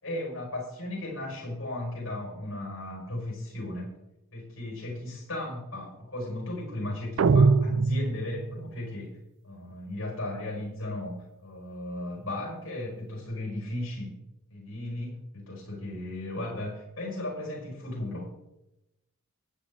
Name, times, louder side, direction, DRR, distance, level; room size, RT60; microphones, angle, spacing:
voice 1, 0.0-3.9 4.3-9.2 9.4-14.1 14.5-18.3, left 1 dB, 60° left, -1 dB, 5.4 m, -36 dB
sound 1, 7.2-8.6, right 4 dB, 65° right, 0.4 m, -22 dB
15.0 x 9.8 x 3.7 m, 0.88 s
head